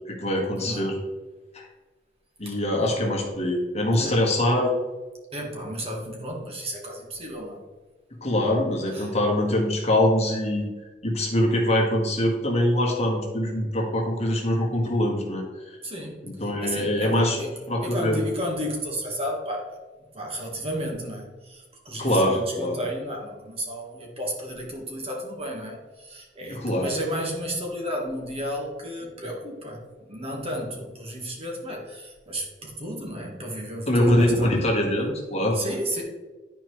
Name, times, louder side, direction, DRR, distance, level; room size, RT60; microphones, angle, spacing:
voice 1, 0.1-0.9 1.5-1.6 2.4-4.7 8.2-10.7 11.0-15.8 16.2-17.4 17.7-18.2 22.0-22.8 26.5-26.9 33.9-35.6, left 1 dB, 35° left, -1 dB, 1.6 m, -23 dB
voice 2, 0.6-0.9 2.4-3.0 3.9-4.2 5.3-7.6 8.9-9.1 15.8-17.5 17.8-19.8 20.1-34.7 35.5-36.0, equal, 35° right, -1 dB, 1.5 m, -33 dB
11.5 x 4.5 x 3.2 m, 1.2 s
head